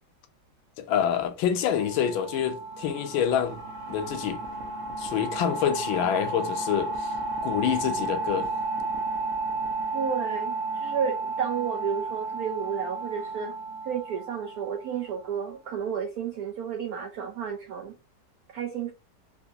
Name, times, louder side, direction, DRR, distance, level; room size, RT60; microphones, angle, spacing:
voice 1, 0.8-3.6 3.9-4.4 5.0-7.1 7.4-8.5, left 9 dB, 80° left, 1.3 m, -27 dB
sound 1, 1.7-15.2, right 3 dB, 60° right, 1.0 m, -33 dB
voice 2, 9.9-13.6 13.8-18.0 18.5-18.9, right 7 dB, 90° right, 0.8 m, -32 dB
3.4 x 2.8 x 2.7 m
omnidirectional pair, 2.2 m